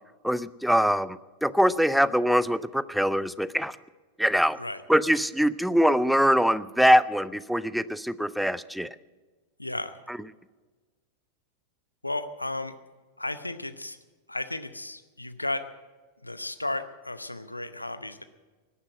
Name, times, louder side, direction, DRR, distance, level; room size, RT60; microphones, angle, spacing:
voice 1, 0.2-3.8 4.2-4.6 4.9-9.0 10.1-10.2, equal, ahead, 18 dB, 0.5 m, -23 dB
voice 2, 9.6-10.0 12.0-12.8 13.2-14.0 14.3-15.6 16.2-18.2, left 2 dB, 85° left, 11 dB, 0.8 m, -34 dB
18.0 x 9.9 x 7.7 m, 1.3 s
figure-of-eight pair, 90°, 0 cm